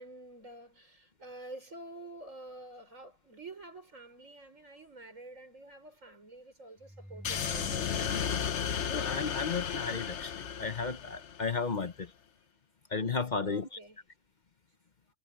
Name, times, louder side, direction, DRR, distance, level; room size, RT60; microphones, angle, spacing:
voice 1, 0.0-8.4 13.4-14.0, right 2 dB, 85° right, 6.3 m, -48 dB
sound 1, 6.8-10.0, equal, ahead, 4.5 m, -49 dB
sound 2, 7.2-11.6, left 8 dB, 65° left, 1.2 m, -34 dB
voice 2, 8.8-12.1 12.9-13.7, left 4 dB, 40° left, 1.0 m, -34 dB
omnidirectional pair, 1.3 m